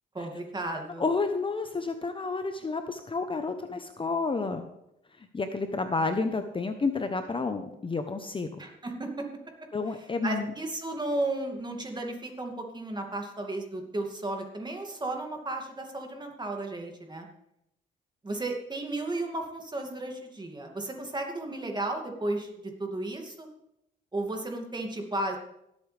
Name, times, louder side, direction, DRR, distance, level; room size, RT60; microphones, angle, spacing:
voice 1, 0.1-1.0 8.6-9.3 10.0-17.3 18.2-23.5 24.1-25.4, right 2 dB, 20° right, 2 dB, 2.4 m, -34 dB
voice 2, 1.0-4.6 5.3-8.5 9.7-10.5, left 4 dB, 25° left, 7 dB, 0.9 m, -30 dB
18.0 x 8.3 x 3.4 m, 0.81 s
cardioid pair, 90°, 20 cm